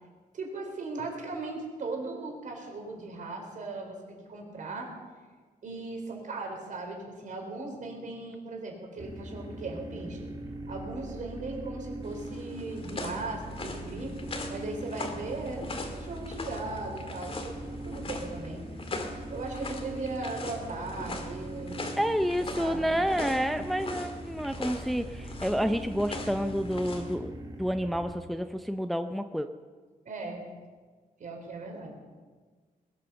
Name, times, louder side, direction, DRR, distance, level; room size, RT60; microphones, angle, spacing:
voice 1, 0.3-4.9 5.6-10.3 10.7-14.1 14.5-18.6 19.3-21.9 22.5-23.0 26.9-27.1 30.1-30.4 31.2-32.0, right 3 dB, 55° right, 2 dB, 4.1 m, -38 dB
sound 1, 9.0-28.1, right 1 dB, 25° right, 1.9 m, -41 dB
sound 2, 12.0-27.1, left 2 dB, 35° left, 2.0 m, -41 dB
voice 2, 22.0-27.3 27.6-29.5, equal, ahead, 8 dB, 0.5 m, -29 dB
20.5 x 9.6 x 6.9 m, 1.5 s
wide cardioid pair, 125°, 16 cm